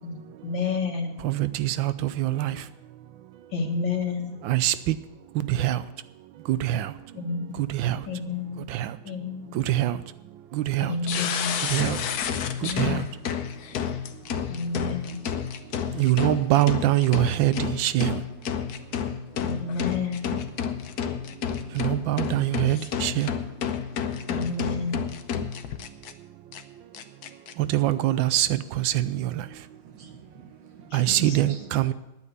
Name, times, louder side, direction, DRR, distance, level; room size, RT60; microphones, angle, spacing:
voice 1, 0.0-1.2 3.5-4.3 7.1-7.6 8.1-8.6 9.0-9.6 10.8-11.5 12.6-13.0 14.5-15.2 19.4-20.4 24.3-25.0 30.9-31.5, left 4 dB, 80° left, 2 dB, 2.5 m, -30 dB
voice 2, 1.2-2.7 4.4-5.0 5.3-5.8 6.5-6.9 7.6-8.1 8.7-9.0 9.5-10.0 10.5-11.0 11.6-12.0 12.6-13.1 15.9-18.2 21.7-23.3 27.6-29.6 30.9-31.9, right 14 dB, 90° right, 15 dB, 1.4 m, -24 dB
sound 1, 11.1-26.1 26.5-26.6 26.9-27.5, left 8 dB, 60° left, 1.2 m, -30 dB
voice 3, 29.7-31.9, right 5 dB, 70° right, 4 dB, 2.2 m, -47 dB
10.0 x 9.0 x 8.3 m, 0.91 s
omnidirectional pair, 2.1 m